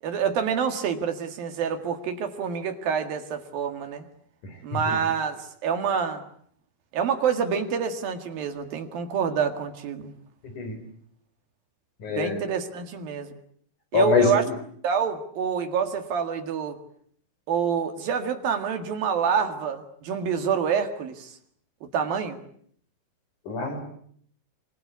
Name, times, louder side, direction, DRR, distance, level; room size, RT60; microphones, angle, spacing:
voice 1, 0.0-4.0 4.6-6.2 6.9-10.1 12.1-13.4 13.9-14.4 14.8-16.8 17.5-21.4 21.8-22.4, right 7 dB, 55° right, 6 dB, 3.2 m, -27 dB
voice 2, 10.4-10.8 12.0-12.4 13.9-14.5 23.5-23.8, left 5 dB, 40° left, 7 dB, 5.2 m, -24 dB
26.5 x 23.5 x 8.3 m, 0.63 s
omnidirectional pair, 5.7 m